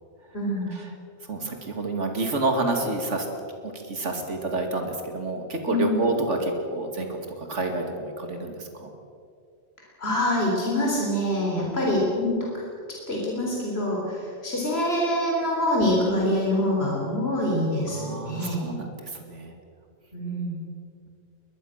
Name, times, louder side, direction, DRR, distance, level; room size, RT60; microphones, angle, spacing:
voice 1, 0.3-0.7 5.7-6.1 10.0-12.4 13.1-18.6 20.1-20.6, left 1 dB, 60° left, -3 dB, 4.2 m, -25 dB
voice 2, 1.3-3.3 3.6-8.9 11.6-11.7 17.8-19.5, right 2 dB, 85° right, 4 dB, 2.7 m, -29 dB
22.0 x 21.0 x 6.5 m, 2.4 s
omnidirectional pair, 1.2 m